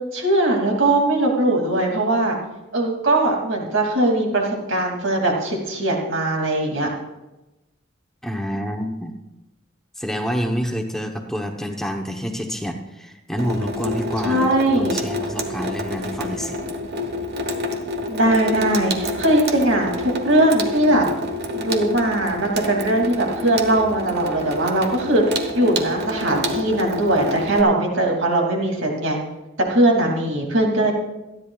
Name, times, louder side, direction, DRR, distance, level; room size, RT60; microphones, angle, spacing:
voice 1, 0.1-2.4 2.7-6.9 14.3-15.0 18.1-21.0 21.6-25.2 25.5-29.2 29.6-30.9, right 1 dB, 70° right, 1 dB, 2.6 m, -20 dB
voice 2, 8.2-9.1 10.0-16.6, equal, ahead, 3 dB, 0.9 m, -28 dB
Water tap faucet / Sink (filling or washing), 13.4-27.6, left 1 dB, 55° right, 1.2 m, -28 dB
26.5 x 10.0 x 2.4 m, 1.0 s
head